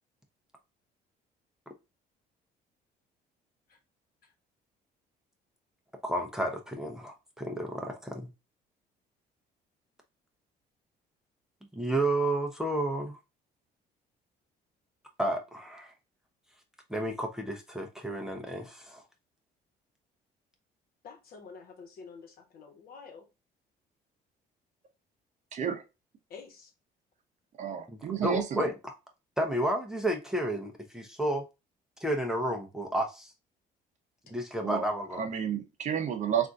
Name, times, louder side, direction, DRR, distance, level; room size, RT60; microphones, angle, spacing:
voice 1, 6.0-8.3 11.8-13.1 15.2-15.9 16.9-19.0 27.9-28.9 29.4-31.4 32.0-33.3 34.3-35.2, right 1 dB, 5° right, 0.6 m, -31 dB
voice 2, 21.0-23.2 26.3-26.7, left 5 dB, 60° left, 1.1 m, -48 dB
voice 3, 25.5-25.8 27.6-28.7 34.6-34.8 35.1-36.5, right 8 dB, 45° right, 0.7 m, -31 dB
3.5 x 2.5 x 2.4 m
cardioid pair, 110°, 17 cm